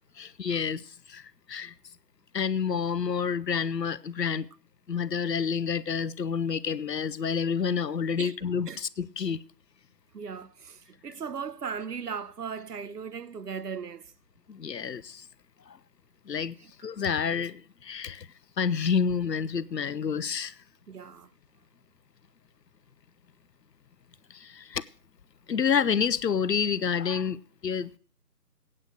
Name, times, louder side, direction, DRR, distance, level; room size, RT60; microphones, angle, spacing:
voice 1, 0.2-1.7 2.3-4.5 4.9-9.4 14.5-15.2 15.7-15.8 16.3-16.5 16.8-18.3 18.6-20.6 24.3-24.8 25.5-28.0, left 6 dB, 90° left, 0.8 m, -29 dB
voice 2, 10.1-14.1 20.9-21.3, right 6 dB, 70° right, 0.8 m, -37 dB
8.8 x 7.8 x 8.1 m
figure-of-eight pair, 165°, 48 cm